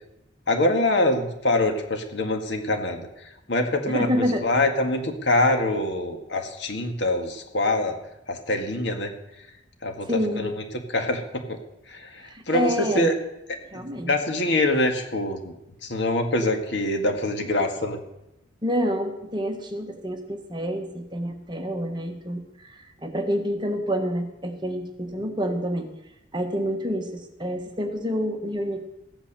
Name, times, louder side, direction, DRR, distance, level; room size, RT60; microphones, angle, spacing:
voice 1, 0.5-3.1 3.5-8.0 8.3-9.1 9.8-10.1 10.4-10.6 10.9-11.6 11.9-13.1 13.7-15.5 15.8-18.0, left 1 dB, 60° left, 4 dB, 1.9 m, -24 dB
voice 2, 3.9-4.4 10.1-10.5 12.2-13.1 13.7-14.1 18.6-25.9 26.3-28.9, equal, 25° right, 4 dB, 1.3 m, -28 dB
15.5 x 8.8 x 6.8 m, 0.86 s
head